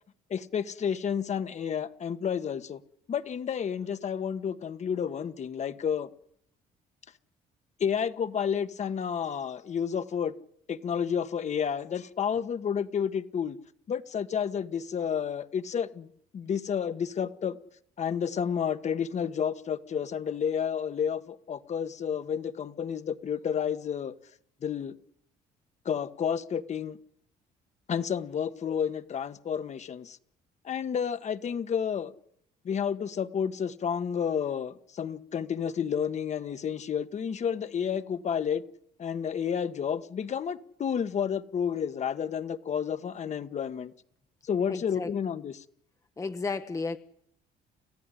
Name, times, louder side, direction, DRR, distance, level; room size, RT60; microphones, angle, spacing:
voice 1, 0.3-2.8 3.1-6.1 7.8-10.3 10.7-13.6 13.9-17.6 18.0-24.1 24.6-24.9 25.8-27.0 27.9-30.2 30.6-32.1 32.6-38.6 39.0-43.9 44.4-45.6, left 7 dB, 45° left, 1.4 m, -30 dB
voice 2, 44.7-45.1 46.2-47.0, left 4 dB, 20° left, 0.9 m, -33 dB
30.0 x 14.5 x 9.9 m
cardioid pair, 110°, 17 cm